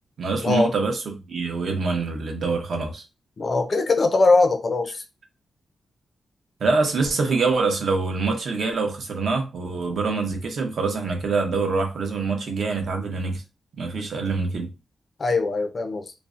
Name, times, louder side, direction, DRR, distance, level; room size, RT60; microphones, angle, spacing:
voice 1, 0.2-3.0 6.6-13.4 13.8-14.7, right 4 dB, 55° right, 0.6 m, -25 dB
voice 2, 3.4-5.0 15.2-16.1, left 3 dB, 35° left, 0.4 m, -21 dB
2.5 x 2.0 x 2.4 m
wide cardioid pair, 170°, 0 cm